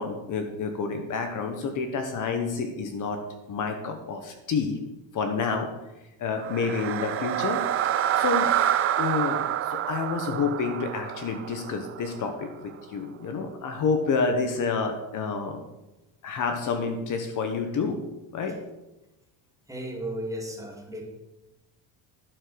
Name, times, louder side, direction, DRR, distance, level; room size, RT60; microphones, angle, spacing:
voice 1, 0.0-3.2 3.5-4.8 5.1-5.7 6.2-7.6 8.1-8.5 8.9-15.6 16.2-18.0 18.3-18.6, left 4 dB, 40° left, 6 dB, 1.3 m, -29 dB
sound 1, 6.4-12.5, right 10 dB, 30° right, 0.5 m, -27 dB
voice 2, 19.7-21.0, right 1 dB, 5° right, 0 dB, 2.1 m, -34 dB
11.5 x 7.4 x 6.4 m, 0.99 s
cardioid pair, 155°, 46 cm